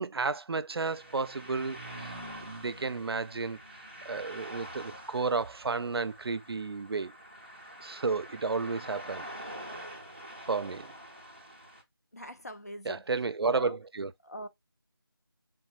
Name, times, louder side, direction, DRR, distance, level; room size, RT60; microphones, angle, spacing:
voice 1, 0.0-2.1 2.4-7.1 7.8-9.3 10.5-10.9 12.9-14.1, right 4 dB, 85° right, 0.4 m, -32 dB
sound 1, 0.8-11.8, right 1 dB, 25° right, 0.5 m, -46 dB
voice 2, 12.1-13.0 13.4-13.8 14.2-14.5, equal, 40° left, 0.4 m, -42 dB
3.6 x 2.0 x 2.3 m
figure-of-eight pair, 180°, 13 cm